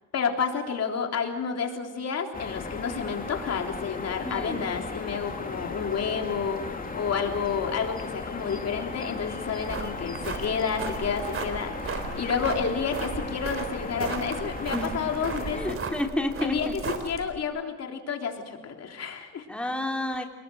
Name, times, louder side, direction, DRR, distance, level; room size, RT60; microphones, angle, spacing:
voice 1, 0.1-15.8 16.4-19.5, left 6 dB, 55° left, 3 dB, 3.6 m, -30 dB
sound 1, 2.3-15.7, left 3 dB, 30° left, 3.2 m, -36 dB
voice 2, 4.2-4.6 12.4-12.5 14.7-14.9 15.5-17.0 19.5-20.2, left 1 dB, 5° left, 2 dB, 3.0 m, -30 dB
sound 2, 9.5-17.4, right 5 dB, 45° right, 3.9 m, -36 dB
29.0 x 20.5 x 7.8 m, 1.2 s
cardioid pair, 90°, 30 cm